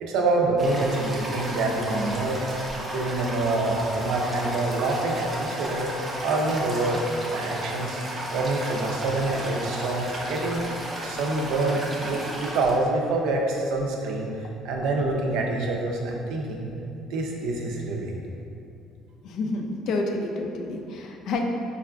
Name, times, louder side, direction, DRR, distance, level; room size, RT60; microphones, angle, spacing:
voice 1, 0.0-2.4 2.9-5.9 6.2-7.0 7.3-8.0 8.3-10.6 11.0-14.3 14.6-16.7 17.1-18.2, right 2 dB, 75° right, 0 dB, 0.4 m, -26 dB
Toilet flush, 0.6-12.8, right 1 dB, 20° right, 0.4 m, -33 dB
voice 2, 19.2-21.4, left 2 dB, 55° left, 3 dB, 0.3 m, -29 dB
4.6 x 2.4 x 2.2 m, 2.6 s
cardioid pair, 140°, 0 cm